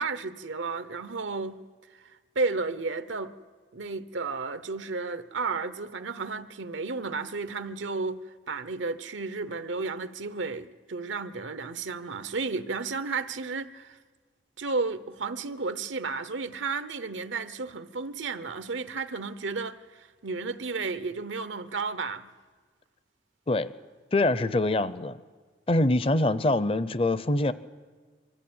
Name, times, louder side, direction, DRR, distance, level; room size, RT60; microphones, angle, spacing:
voice 1, 0.0-1.6 1.9-3.3 3.7-8.2 8.5-14.0 14.6-22.3, right 4 dB, 90° right, 0.9 m, -33 dB
voice 2, 24.1-25.2 25.7-27.5, left 2 dB, 30° left, 0.5 m, -24 dB
23.5 x 14.0 x 8.7 m
head